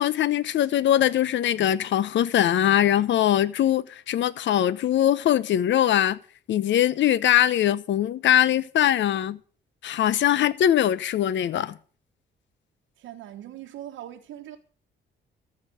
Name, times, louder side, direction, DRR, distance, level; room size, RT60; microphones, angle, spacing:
voice 1, 0.0-6.2 6.5-9.4 9.8-11.8, left 11 dB, 70° left, 0.9 m, -22 dB
voice 2, 13.0-14.6, right 12 dB, 80° right, 1.3 m, -40 dB
14.0 x 5.9 x 9.2 m
cardioid pair, 90°, 20 cm